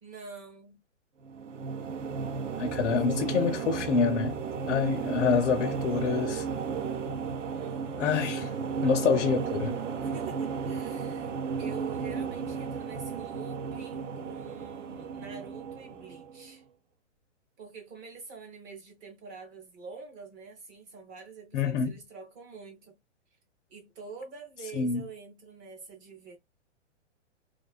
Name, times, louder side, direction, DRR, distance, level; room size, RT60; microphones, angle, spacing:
voice 1, 0.0-0.8 2.7-3.3 7.5-8.1 10.0-16.6 17.6-23.0 23.7-26.4, right 5 dB, 15° right, 0.4 m, -46 dB
sound 1, 1.2-16.5, right 5 dB, 85° right, 0.6 m, -34 dB
voice 2, 2.6-4.4 4.7-6.5 8.0-8.5 8.8-9.8 21.5-21.9 24.8-25.0, left 6 dB, 70° left, 0.5 m, -27 dB
2.4 x 2.3 x 2.2 m
hypercardioid pair, 140°, 37 cm